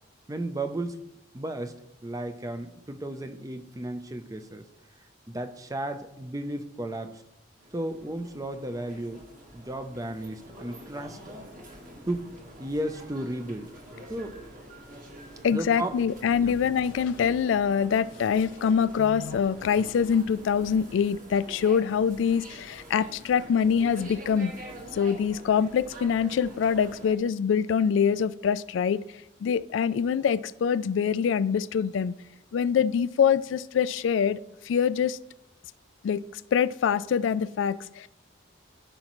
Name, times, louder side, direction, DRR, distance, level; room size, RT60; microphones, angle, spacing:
voice 1, 0.3-1.0 1.3-1.7 2.0-4.6 5.3-7.2 7.7-9.3 9.5-11.3 12.1-12.3 12.6-13.7 14.1-14.4 15.5-16.0 16.4-16.5, right 1 dB, 20° right, 8 dB, 0.5 m, -34 dB
sound 1, 7.6-27.1, right 1 dB, 45° right, 1.7 m, -46 dB
voice 2, 15.4-24.5 24.9-29.0 29.4-32.1 32.5-35.2 36.0-38.1, left 7 dB, 80° left, 16 dB, 0.3 m, -25 dB
14.0 x 5.3 x 3.0 m, 0.87 s
head